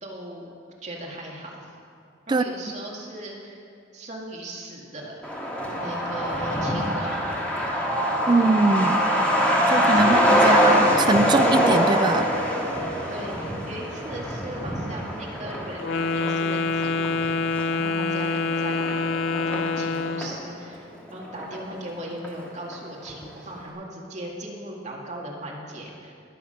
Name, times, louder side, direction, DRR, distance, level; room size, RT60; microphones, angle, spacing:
voice 1, 0.0-0.5 0.8-1.7 2.3-3.6 3.9-5.2 5.8-7.2 9.5-10.7 13.1-26.1, right 1 dB, 40° right, -3 dB, 2.0 m, -38 dB
Truck, 5.2-20.4 20.7-20.8 21.1-22.0 22.2-22.3 22.7-23.1, equal, 5° left, 1.8 m, -24 dB
voice 2, 8.3-9.0 9.7-12.3, right 3 dB, 25° right, 11 dB, 0.3 m, -22 dB
Wind instrument woodwind instrument, 15.8-20.4, left 3 dB, 90° left, 0.5 m, -26 dB
20.5 x 7.3 x 5.6 m, 2.4 s
head